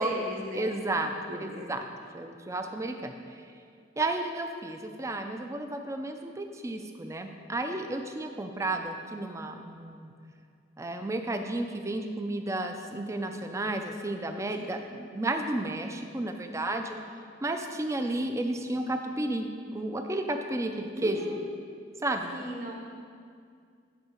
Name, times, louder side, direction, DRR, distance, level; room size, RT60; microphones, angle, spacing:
voice 1, 0.0-1.7 20.9-21.5 22.3-22.7, right 1 dB, 45° right, -1 dB, 1.2 m, -37 dB
voice 2, 0.5-1.9 2.1-3.1 4.0-10.1 10.8-17.0 17.4-19.5 19.7-21.3 22.0-22.3, right 2 dB, 15° right, 5 dB, 0.4 m, -32 dB
9.6 x 4.6 x 4.4 m, 2.2 s
head